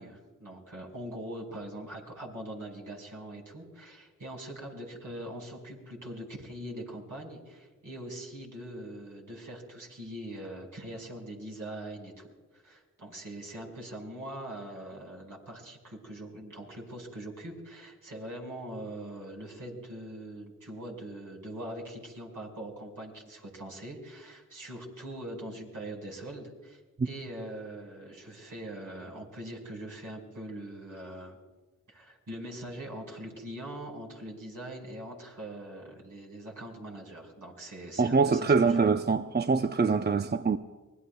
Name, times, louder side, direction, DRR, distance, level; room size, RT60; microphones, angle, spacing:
voice 1, 0.0-31.4 31.9-38.8, right 1 dB, 70° right, 5.2 m, -42 dB
voice 2, 38.0-40.6, right 4 dB, 30° right, 0.6 m, -24 dB
25.0 x 20.0 x 2.3 m
cardioid pair, 40°, 34 cm